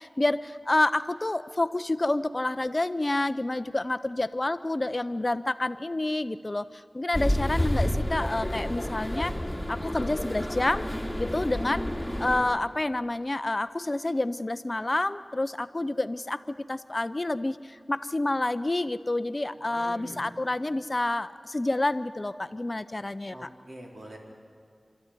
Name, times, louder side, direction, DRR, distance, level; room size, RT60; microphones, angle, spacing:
voice 1, 0.0-9.3 9.7-10.9 11.2-11.9 12.2-23.5, left 2 dB, 35° left, 13 dB, 0.6 m, -28 dB
sound 1, 7.1-12.4, equal, ahead, 3.6 m, -30 dB
voice 2, 19.6-20.3 23.3-24.2, right 1 dB, 60° right, -1 dB, 4.3 m, -44 dB
26.5 x 14.0 x 9.9 m, 2.2 s
wide cardioid pair, 65°, 0 cm